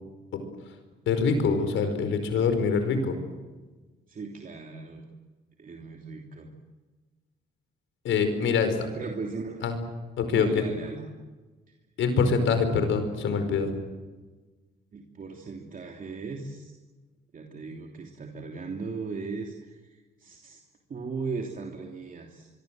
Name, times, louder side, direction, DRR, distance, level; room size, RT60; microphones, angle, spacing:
voice 1, 1.1-3.2 8.0-8.9 9.6-9.8 10.2-10.6 12.0-13.7, left 5 dB, 75° left, 8 dB, 5.1 m, -24 dB
voice 2, 4.1-5.1 5.6-6.5 8.9-9.8 10.3-11.1 11.7-11.8 14.9-16.8 17.3-20.6 20.9-22.5, right 4 dB, 45° right, 2 dB, 3.1 m, -37 dB
24.5 x 24.0 x 7.8 m, 1.3 s
cardioid pair, 90°, 20 cm